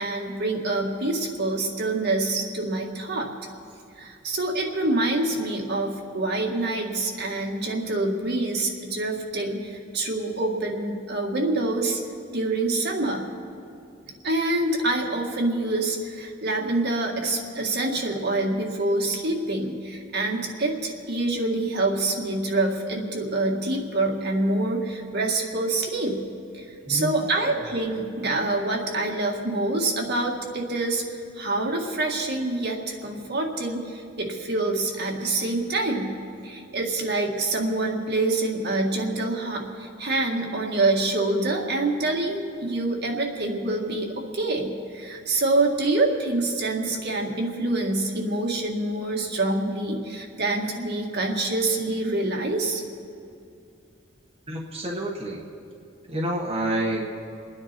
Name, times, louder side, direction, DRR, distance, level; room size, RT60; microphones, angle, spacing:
voice 1, 0.0-3.3 4.0-12.0 12.3-13.3 14.2-26.2 26.5-31.0 31.4-36.2 36.4-52.8, right 2 dB, 60° right, 0 dB, 1.9 m, -26 dB
voice 2, 26.9-27.5 54.5-55.4 56.1-57.1, right 1 dB, 30° right, -3 dB, 1.5 m, -29 dB
29.5 x 9.9 x 4.4 m, 2.5 s
head